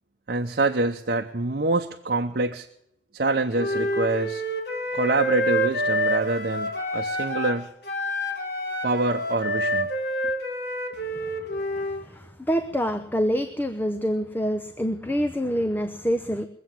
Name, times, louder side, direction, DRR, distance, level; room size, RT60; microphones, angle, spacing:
voice 1, 0.3-2.7 3.1-4.4 4.9-7.7 8.8-9.9, right 2 dB, 60° right, 4 dB, 0.9 m, -25 dB
Wind instrument woodwind instrument, 3.5-7.6 7.8-12.0, equal, 65° left, 2.8 m, -27 dB
voice 2, 11.8-16.5, equal, 10° left, 8 dB, 0.8 m, -26 dB
22.5 x 8.4 x 7.6 m, 0.77 s
head